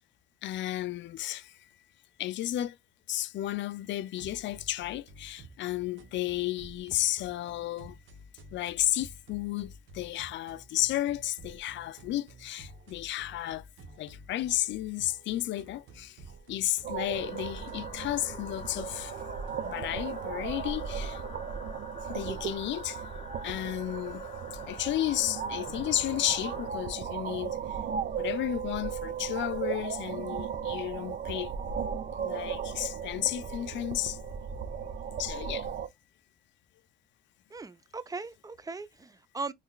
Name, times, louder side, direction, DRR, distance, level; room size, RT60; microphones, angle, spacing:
voice 1, 0.4-1.5 2.2-2.8 3.1-7.9 8.5-13.6 14.0-16.2 16.5-19.1 19.6-21.2 22.1-23.0 23.4-24.2 24.7-27.6 28.2-31.5 32.2-34.2 35.2-35.7, left 14 dB, 70° left, 0.4 m, -33 dB
sound 1, 4.1-19.8, right 1 dB, 75° right, 1.0 m, -51 dB
sound 2, 16.8-35.9, right 7 dB, 50° right, 0.7 m, -36 dB
sound 3, 17.1-26.7, left 5 dB, 30° left, 0.6 m, -48 dB
voice 2, 37.5-39.5, right 3 dB, 20° right, 0.5 m, -39 dB
3.7 x 3.2 x 2.2 m
cardioid pair, 90°, 20 cm